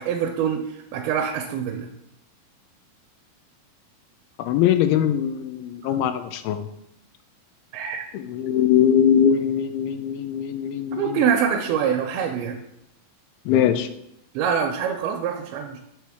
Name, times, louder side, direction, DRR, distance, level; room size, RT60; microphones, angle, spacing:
voice 1, 0.0-1.9 5.8-6.0 7.7-8.1 10.9-12.6 14.3-15.8, right 8 dB, 85° right, 3 dB, 2.5 m, -25 dB
voice 2, 4.4-6.7 8.1-11.2 13.5-13.9, left 9 dB, 85° left, 10 dB, 2.4 m, -21 dB
7.0 x 4.5 x 3.5 m, 0.80 s
omnidirectional pair, 4.3 m